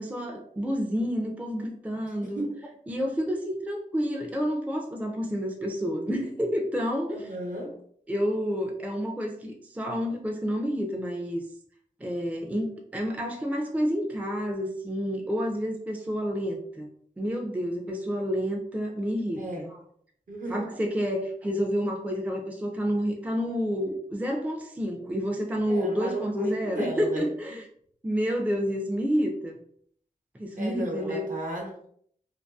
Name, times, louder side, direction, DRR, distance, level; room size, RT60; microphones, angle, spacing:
voice 1, 0.0-2.5 2.9-7.3 8.1-11.4 12.0-16.9 17.2-19.4 20.5-27.6 28.0-29.6 30.4-31.3, equal, 10° right, 2 dB, 0.4 m, -29 dB
voice 2, 2.2-2.5 7.1-7.8 19.4-19.7 20.3-20.7 25.7-27.3 30.5-31.9, right 1 dB, 65° right, 0 dB, 0.8 m, -34 dB
2.6 x 2.3 x 2.2 m, 0.63 s
wide cardioid pair, 70°, 15 cm